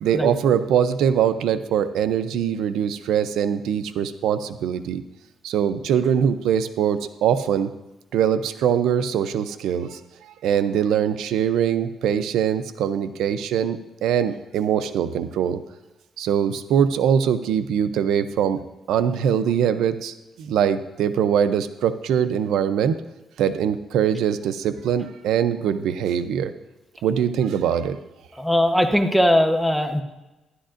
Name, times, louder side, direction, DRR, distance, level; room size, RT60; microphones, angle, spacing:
voice 1, 0.0-5.0 5.4-7.7 8.1-15.6 16.2-18.6 18.9-23.0 23.4-26.5 27.0-28.0, right 8 dB, 90° right, 11 dB, 0.5 m, -22 dB
voice 2, 28.4-30.0, equal, ahead, 5 dB, 0.9 m, -19 dB
12.5 x 11.0 x 2.5 m, 1.0 s
cardioid pair, 110°, 0 cm